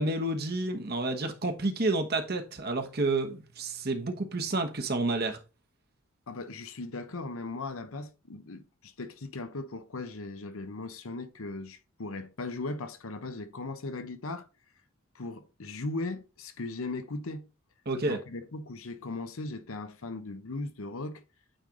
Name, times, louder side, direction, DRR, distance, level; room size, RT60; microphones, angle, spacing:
voice 1, 0.0-5.4 17.9-18.2, right 2 dB, 45° right, 1.1 m, -30 dB
voice 2, 6.3-14.5 15.1-17.5 18.1-21.2, left 2 dB, 70° left, 0.8 m, -38 dB
8.9 x 3.3 x 3.8 m
head